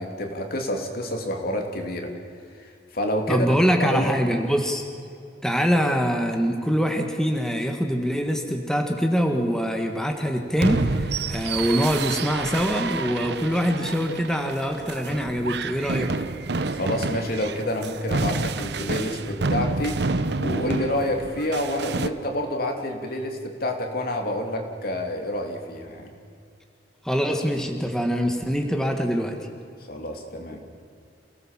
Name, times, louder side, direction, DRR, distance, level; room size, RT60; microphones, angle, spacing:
voice 1, 0.0-2.1 2.6-4.1 16.7-20.0 20.4-26.1 29.9-30.6, left 1 dB, 60° left, 3 dB, 3.0 m, -28 dB
voice 2, 3.3-4.8 5.4-16.1 27.0-29.4, equal, 5° left, 3 dB, 1.6 m, -24 dB
sound 1, 10.6-22.1, right 3 dB, 70° right, 1.0 m, -29 dB
28.0 x 17.5 x 7.5 m, 2.4 s
head